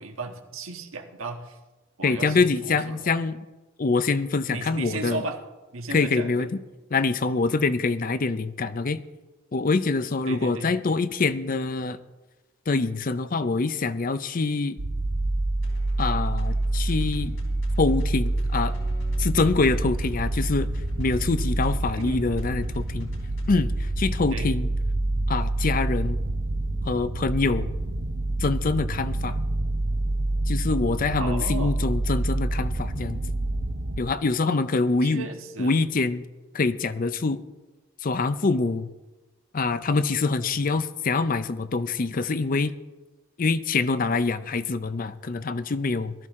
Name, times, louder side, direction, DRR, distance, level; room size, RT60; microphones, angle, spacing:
voice 1, 0.0-1.6 2.0-3.2 4.5-5.4 5.7-6.5 10.2-10.7 22.0-22.2 24.3-24.5 31.2-31.8 35.0-35.7 40.5-40.7, right 3 dB, 90° right, 4 dB, 1.5 m, -35 dB
voice 2, 2.0-3.4 3.8-5.2 5.9-6.6 6.9-9.0 9.5-12.0 12.7-14.8 16.0-17.4 17.8-18.7 19.2-20.7 21.0-23.1 23.5-24.7 25.3-26.2 26.8-27.7 28.4-29.4 30.5-33.2 34.0-35.3 35.6-36.2 36.5-37.4 38.0-38.9 39.5-42.7 43.4-46.1, left 3 dB, 45° left, 13 dB, 0.5 m, -25 dB
sound 1, 14.8-34.0, right 2 dB, 65° right, 0.8 m, -27 dB
sound 2, 15.6-23.6, left 2 dB, 65° left, 3.6 m, -54 dB
18.5 x 13.0 x 3.7 m, 1.1 s
head